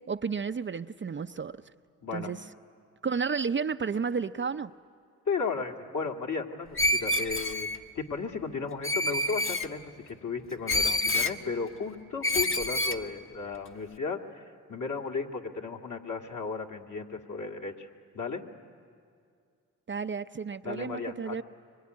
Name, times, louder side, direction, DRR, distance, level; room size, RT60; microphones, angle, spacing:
voice 1, 0.1-1.6 2.1-2.4 3.0-4.7 19.9-21.4, right 5 dB, 30° right, 9 dB, 0.6 m, -32 dB
voice 2, 2.0-2.3 5.3-7.7 8.0-9.9 10.2-14.4 14.7-17.9 18.1-18.4 20.6-21.4, left 4 dB, 55° left, 2 dB, 2.3 m, -34 dB
Screech, 6.8-7.8 8.8-9.7 10.7-11.4 12.2-13.0, left 1 dB, 35° left, 1.3 m, -27 dB
24.5 x 24.0 x 9.6 m, 2.3 s
supercardioid pair, 55°, 37 cm